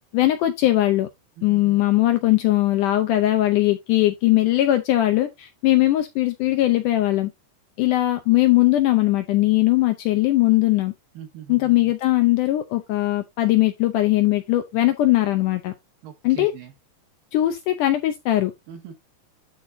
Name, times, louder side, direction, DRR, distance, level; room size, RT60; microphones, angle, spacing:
voice 1, 0.1-1.1 1.4-7.3 7.8-10.9 11.5-15.7 16.2-16.5 17.3-18.5, left 16 dB, 80° left, 1.9 m, -20 dB
voice 2, 1.4-1.8 11.1-11.9 16.0-16.7 18.7-18.9, right 9 dB, 70° right, 3.4 m, -41 dB
12.5 x 4.3 x 2.6 m
omnidirectional pair, 4.3 m